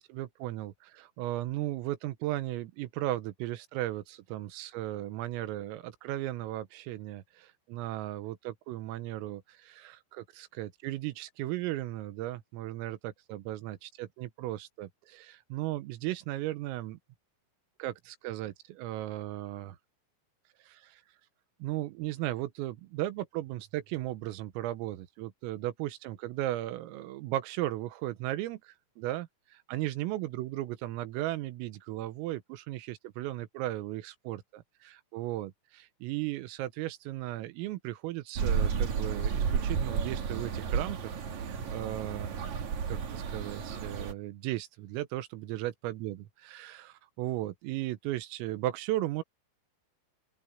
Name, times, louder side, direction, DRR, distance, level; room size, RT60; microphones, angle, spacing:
voice 1, 0.0-17.0 17.8-19.8 20.6-21.0 21.6-49.2, right 15 dB, 85° right, 3.7 m, -36 dB
sound 1, 38.4-44.1, right 6 dB, 50° right, 2.4 m, -32 dB
open air
omnidirectional pair, 5.9 m